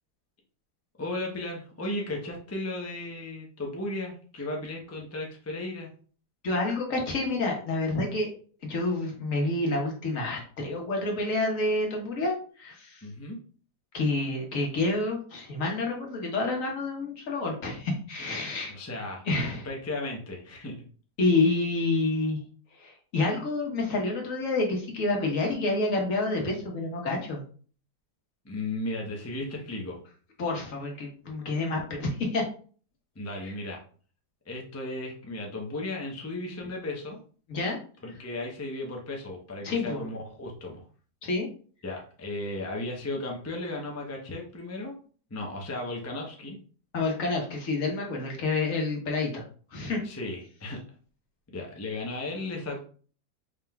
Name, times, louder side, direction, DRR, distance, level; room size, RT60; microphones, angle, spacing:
voice 1, 1.0-5.9 13.0-13.4 18.7-19.2 19.6-20.9 28.4-30.0 33.2-33.8 34.5-37.2 38.0-40.8 41.8-44.9 45.3-46.6 50.0-50.8 51.5-52.8, left 2 dB, 25° left, -1 dB, 0.3 m, -35 dB
voice 2, 6.4-8.3 8.6-13.0 13.9-18.7 19.3-19.7 21.2-22.4 22.8-27.4 30.4-32.4 33.4-33.5 37.5-37.8 39.6-40.0 41.2-41.5 46.9-49.4 49.7-50.0, left 2 dB, 55° left, 0 dB, 1.4 m, -28 dB
5.0 x 3.6 x 2.2 m, 0.42 s
omnidirectional pair, 1.7 m